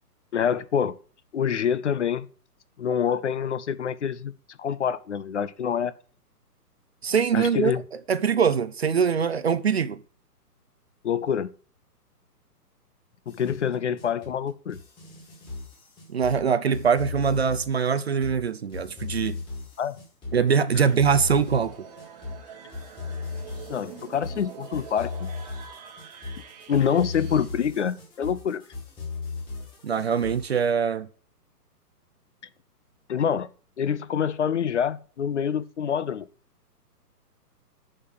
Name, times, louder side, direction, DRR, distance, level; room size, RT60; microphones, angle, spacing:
voice 1, 0.3-1.0 1.3-2.3 2.8-4.3 4.6-5.9 7.3-7.8 11.0-11.5 13.3-14.8 19.8-19.9 23.7-25.3 26.7-28.6 33.1-33.5 33.8-36.3, left 8 dB, 45° left, 0.6 m, -26 dB
voice 2, 7.0-10.0 16.1-19.4 20.3-21.9 29.8-31.1, right 6 dB, 40° right, 0.5 m, -23 dB
sound 1, 13.3-30.7, left 4 dB, 10° left, 2.1 m, -37 dB
sound 2, 20.8-27.5, right 7 dB, 25° right, 1.2 m, -46 dB
7.3 x 6.7 x 7.3 m
hypercardioid pair, 160°, 48 cm